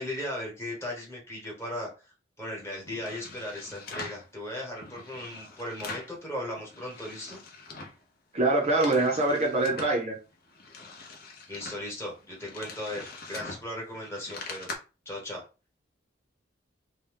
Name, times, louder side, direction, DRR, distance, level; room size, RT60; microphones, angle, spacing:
voice 1, 0.0-1.9 2.4-7.4 11.5-14.7 15.0-15.4, left 1 dB, 15° left, -3 dB, 1.1 m, -37 dB
sound 1, 2.9-4.3 4.8-6.2 6.5-8.0 8.4-10.0 10.5-14.8, left 3 dB, 50° left, 0.7 m, -43 dB
voice 2, 8.3-10.2, right 2 dB, 35° right, -1 dB, 0.6 m, -24 dB
2.6 x 2.2 x 3.3 m, 0.32 s
head